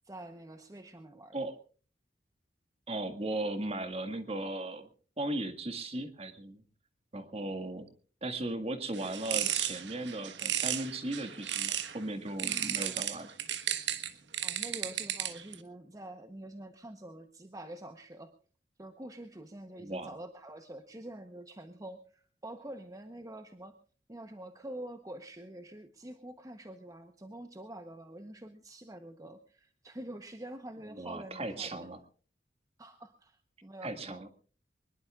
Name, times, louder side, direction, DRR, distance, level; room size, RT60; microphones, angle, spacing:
voice 1, 0.0-1.4 14.4-18.3 18.8-23.7 24.1-31.9 32.8-34.2, right 1 dB, 20° right, 7 dB, 0.9 m, -46 dB
voice 2, 2.9-4.9 5.2-6.6 7.1-7.9 8.2-13.3 19.8-20.1 30.9-32.0 33.8-34.3, right 2 dB, 35° right, 9 dB, 1.8 m, -37 dB
sound 1, 8.9-12.0 12.4-15.5, right 11 dB, 85° right, 1.4 m, -34 dB
23.5 x 21.0 x 2.4 m, 0.39 s
head